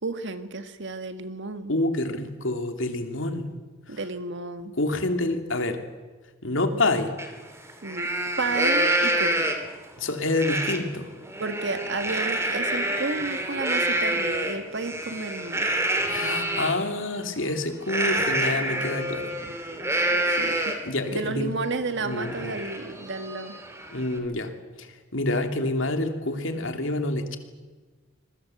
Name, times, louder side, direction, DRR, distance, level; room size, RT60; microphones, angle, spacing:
voice 1, 0.0-1.7 3.9-4.7 7.8-8.1 8.4-9.5 11.4-15.7 20.3-20.7 21.1-23.6, right 3 dB, 65° right, 9 dB, 1.8 m, -32 dB
voice 2, 1.7-3.5 3.9-4.0 4.8-5.8 6.4-7.1 10.0-11.1 16.1-19.3 20.8-21.5 22.0-22.6 23.9-24.5 24.8-27.4, left 2 dB, 70° left, 6 dB, 2.9 m, -27 dB
Livestock farm animals working animals, 7.2-7.3 7.7-9.8 10.4-10.8 11.2-16.8 17.9-20.9 21.4-21.5 21.8-24.2, right 1 dB, 15° right, 2.8 m, -27 dB
26.5 x 21.5 x 7.9 m, 1.3 s
head